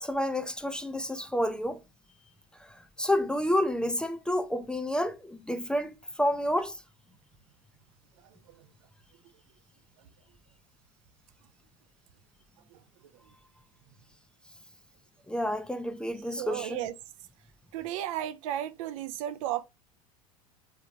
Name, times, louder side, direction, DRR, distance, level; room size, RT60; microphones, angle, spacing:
voice 1, 0.0-1.8 2.6-6.8 15.3-16.8, left 1 dB, 5° left, 0.4 m, -30 dB
voice 2, 16.4-16.9 17.7-19.7, right 12 dB, 60° right, 0.5 m, -34 dB
3.7 x 2.9 x 3.1 m
figure-of-eight pair, 80°, 19 cm